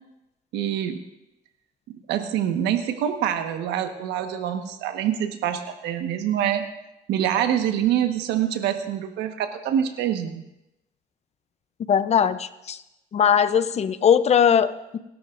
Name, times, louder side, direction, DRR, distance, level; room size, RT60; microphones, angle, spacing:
voice 1, 0.5-1.0 1.9-6.7 7.1-10.4, right 10 dB, 85° right, 6 dB, 1.4 m, -25 dB
voice 2, 11.9-12.8 13.1-15.0, left 8 dB, 40° left, 13 dB, 0.7 m, -20 dB
27.5 x 13.0 x 2.6 m, 0.93 s
cardioid pair, 110°, 17 cm